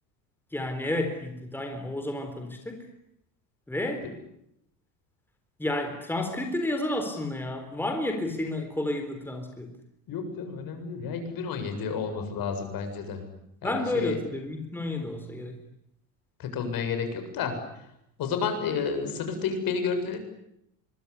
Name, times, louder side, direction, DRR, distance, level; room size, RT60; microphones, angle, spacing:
voice 1, 0.5-2.9 3.7-4.1 5.6-9.7 13.6-15.6, left 1 dB, 5° left, 6 dB, 3.9 m, -31 dB
voice 2, 10.1-13.2 13.6-14.2 16.4-17.9 18.2-20.2, left 5 dB, 50° left, 7 dB, 7.5 m, -31 dB
25.0 x 23.0 x 10.0 m, 0.79 s
supercardioid pair, 115°, 46 cm